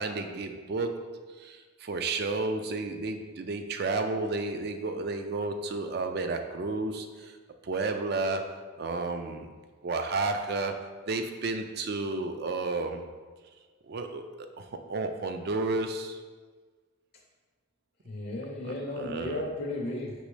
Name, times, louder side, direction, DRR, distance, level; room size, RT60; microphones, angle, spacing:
voice 1, 0.0-7.3 7.6-9.5 9.8-13.0 13.9-16.4 18.6-19.5, right 3 dB, 50° right, 6 dB, 0.4 m, -32 dB
voice 2, 18.1-20.1, left 1 dB, 50° left, -2 dB, 0.5 m, -34 dB
5.3 x 3.0 x 3.2 m, 1.4 s
head